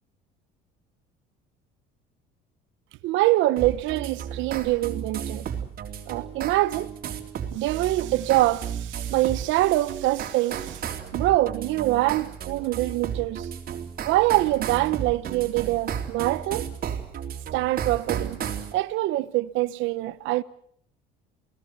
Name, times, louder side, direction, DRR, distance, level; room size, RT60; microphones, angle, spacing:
voice 1, 3.0-5.4 6.1-6.9 7.5-10.8 11.1-13.5 14.0-16.7 17.5-18.4 18.7-20.4, right 17 dB, 75° right, 1.1 m, -24 dB
sound 1, 3.6-18.7, right 8 dB, 50° right, 3.6 m, -34 dB
29.0 x 18.5 x 8.1 m
cardioid pair, 105°, 20 cm